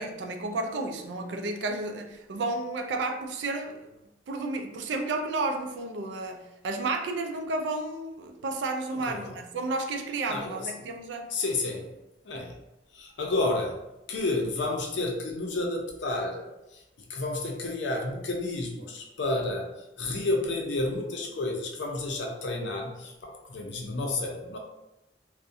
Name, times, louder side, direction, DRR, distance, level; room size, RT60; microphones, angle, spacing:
voice 1, 0.0-3.9 4.3-11.3, right 2 dB, 80° right, 4 dB, 0.4 m, -32 dB
voice 2, 8.9-9.3 10.3-10.7 11.3-11.9 12.2-12.6 12.9-13.8 14.1-16.8 17.1-24.6, left 2 dB, 85° left, 1 dB, 0.5 m, -31 dB
2.6 x 2.1 x 2.4 m, 0.93 s
head